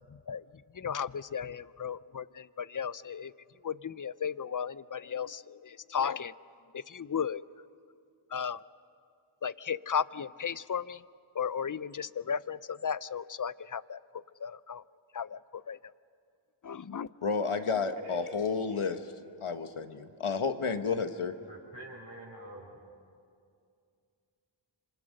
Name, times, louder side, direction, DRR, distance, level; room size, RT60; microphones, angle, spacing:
voice 1, 0.1-0.4 0.7-3.3 3.6-6.3 6.7-7.4 8.3-8.6 9.4-11.0 11.3-14.0 14.4-14.8 15.1-15.8 16.6-17.1, left 7 dB, 40° left, 18 dB, 0.6 m, -35 dB
voice 2, 17.2-19.0 19.4-21.3, left 5 dB, 80° left, 8 dB, 1.3 m, -31 dB
voice 3, 17.9-18.3 18.6-18.8 21.4-22.8, right 1 dB, 40° right, -5 dB, 5.0 m, -47 dB
27.5 x 26.5 x 6.5 m, 2.4 s
wide cardioid pair, 40°, 49 cm